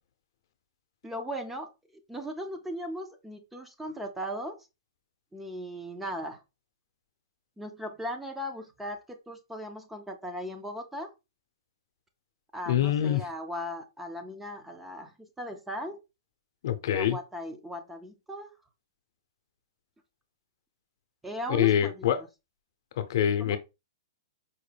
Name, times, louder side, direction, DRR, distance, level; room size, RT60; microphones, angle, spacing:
voice 1, 1.0-1.7 2.1-4.7 5.3-6.4 7.6-11.1 12.5-16.0 16.9-18.5 21.2-22.3 23.4-23.6, equal, 5° right, 0.4 m, -38 dB
voice 2, 12.7-13.2 16.6-17.2 21.5-22.2 23.0-23.6, left 10 dB, 55° left, 0.6 m, -25 dB
4.6 x 2.1 x 3.3 m
hypercardioid pair, 155°, 2 cm